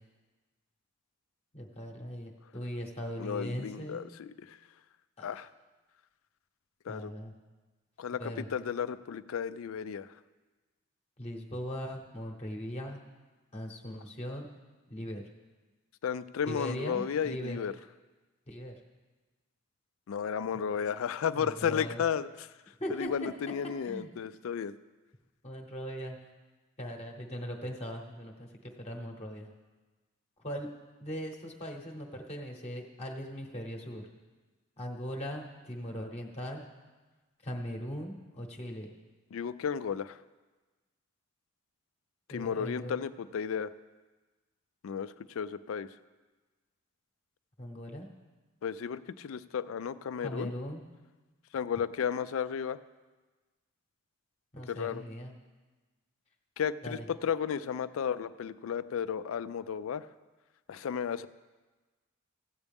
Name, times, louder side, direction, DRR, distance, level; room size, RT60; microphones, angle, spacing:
voice 1, 1.5-4.1 5.2-5.3 6.9-7.3 8.2-8.5 11.2-13.0 13.5-14.5 14.9-15.2 16.5-17.6 18.5-18.7 21.4-22.0 22.8-23.3 23.8-24.1 25.4-26.2 26.8-28.5 28.8-29.5 30.4-30.7 31.0-34.0 34.8-36.6 37.4-38.9 42.3-43.0 47.6-48.1 50.2-50.8 54.5-55.3 56.8-57.0, equal, 30° left, 0 dB, 1.0 m, -39 dB
voice 2, 3.2-4.6 5.2-5.5 6.9-7.1 8.0-10.1 16.0-17.7 20.1-22.5 22.9-24.7 39.3-40.2 42.3-43.7 44.8-45.9 48.6-50.5 51.5-52.8 54.7-55.0 56.6-60.1 60.7-61.3, left 7 dB, 75° left, 14 dB, 0.4 m, -33 dB
15.5 x 8.2 x 3.5 m, 1.3 s
head